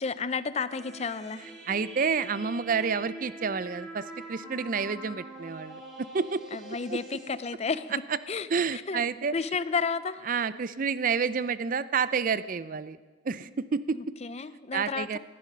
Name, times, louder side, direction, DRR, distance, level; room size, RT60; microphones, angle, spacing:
voice 1, 0.0-1.5 6.5-7.9 8.3-9.0 9.3-10.3 13.9-15.2, left 5 dB, 35° left, 14 dB, 0.5 m, -32 dB
sound 1, 0.7-7.3, right 2 dB, ahead, 3.4 m, -44 dB
voice 2, 1.7-6.4 6.9-7.0 8.5-9.3 10.3-13.0 13.2-14.0 14.7-15.2, right 5 dB, 45° right, 16 dB, 0.5 m, -29 dB
18.0 x 12.0 x 5.5 m, 1.4 s
head